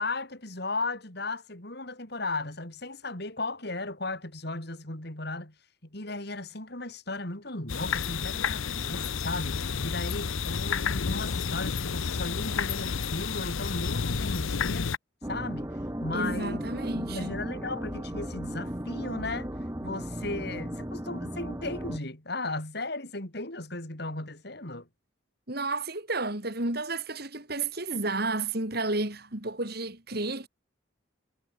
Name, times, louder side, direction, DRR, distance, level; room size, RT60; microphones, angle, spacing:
voice 1, 0.0-5.5 5.8-14.9 15.3-16.6 16.9-19.5 19.8-24.9, left 2 dB, 55° left, 4.0 m, -36 dB
sound 1, 7.7-15.0, left 5 dB, 85° left, 0.8 m, -30 dB
sound 2, 15.2-22.0, equal, 15° right, 1.5 m, -35 dB
voice 2, 16.1-17.4 25.5-30.5, right 2 dB, 50° right, 4.1 m, -32 dB
head